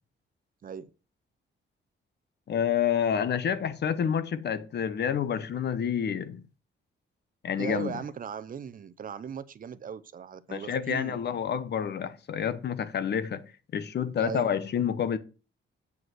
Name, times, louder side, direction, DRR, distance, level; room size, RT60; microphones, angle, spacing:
voice 1, 2.5-6.4 7.4-7.9 10.5-15.2, left 8 dB, 55° left, 0.9 m, -29 dB
voice 2, 7.6-11.4 14.2-14.5, right 7 dB, 45° right, 0.6 m, -38 dB
8.2 x 5.2 x 7.6 m
cardioid pair, 135°, 21 cm